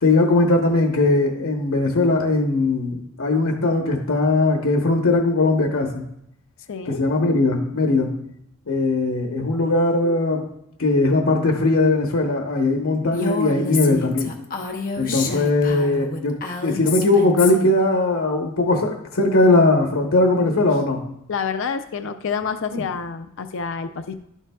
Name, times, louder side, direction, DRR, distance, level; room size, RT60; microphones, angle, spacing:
voice 1, 0.0-6.0 6.9-8.1 8.7-10.5 10.8-14.3 15.0-21.0 22.7-22.8, left 2 dB, 85° left, 1 dB, 1.0 m, -19 dB
voice 2, 6.7-7.0 15.1-15.4 21.3-24.1, left 5 dB, 65° left, 9 dB, 0.5 m, -28 dB
Female speech woman speaking, 13.1-17.8, left 3 dB, 45° left, 0.9 m, -29 dB
12.0 x 7.2 x 2.3 m, 0.77 s
head